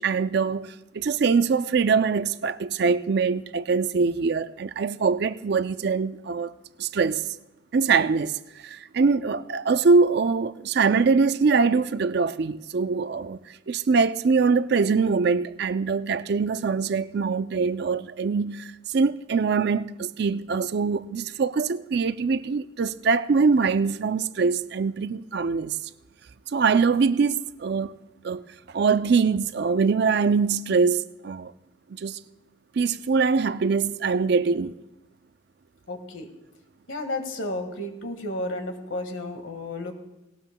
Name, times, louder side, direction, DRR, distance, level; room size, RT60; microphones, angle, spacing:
voice 1, 0.0-6.5 6.8-7.2 7.7-25.8 26.5-28.0 28.2-28.5 28.7-31.5 31.9-32.2 32.8-34.8, right 5 dB, 60° right, 0.4 m, -23 dB
voice 2, 35.9-36.3 36.9-39.9, left 1 dB, 85° left, 1.7 m, -32 dB
18.5 x 18.0 x 2.2 m
head